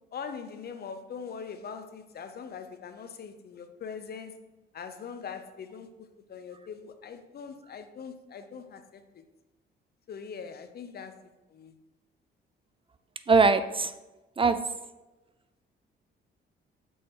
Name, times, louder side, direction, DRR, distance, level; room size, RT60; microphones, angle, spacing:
voice 1, 0.1-4.4 4.7-5.9 6.2-9.2 10.1-11.7, left 6 dB, 50° left, 8 dB, 0.7 m, -42 dB
voice 2, 13.3-13.9 14.4-14.6, right 4 dB, 25° right, 11 dB, 0.3 m, -21 dB
6.3 x 4.6 x 4.6 m, 1.1 s
cardioid pair, 90°, 20 cm